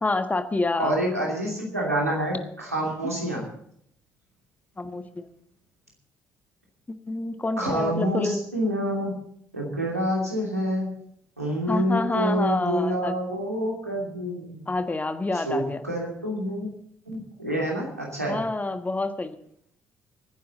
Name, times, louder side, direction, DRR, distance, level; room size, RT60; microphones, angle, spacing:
voice 1, 0.0-1.0 3.0-3.1 4.8-5.3 6.9-8.4 11.7-13.2 14.7-15.8 18.3-19.4, left 2 dB, 20° left, 9 dB, 1.4 m, -27 dB
voice 2, 0.8-3.5 7.6-9.1 9.5-10.9 11.4-14.6 15.5-16.7 17.1-18.4, equal, 90° right, -2 dB, 2.8 m, -27 dB
23.5 x 10.5 x 4.0 m, 0.67 s
figure-of-eight pair, 50°, 8 cm